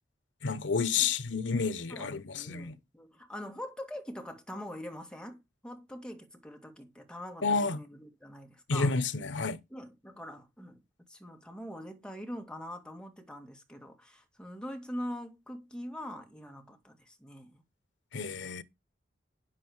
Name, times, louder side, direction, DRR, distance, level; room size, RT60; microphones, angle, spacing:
voice 1, 0.4-2.7 7.4-7.8 8.7-9.6 18.1-18.6, left 4 dB, 85° left, 0.9 m, -30 dB
voice 2, 1.9-8.9 9.7-10.8 11.1-17.6, equal, 5° left, 2.0 m, -43 dB
9.7 x 7.5 x 4.7 m
head